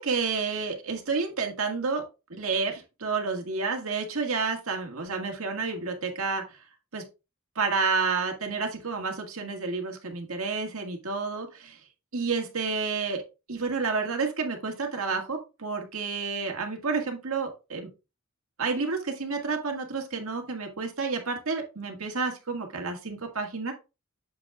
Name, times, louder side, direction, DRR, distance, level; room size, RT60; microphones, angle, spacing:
voice 1, 0.0-2.0 2.3-6.4 6.9-7.0 7.6-11.8 12.1-13.2 13.5-17.9 18.6-23.7, right 4 dB, 85° right, 3 dB, 1.9 m, -30 dB
7.5 x 7.5 x 2.4 m, 0.28 s
head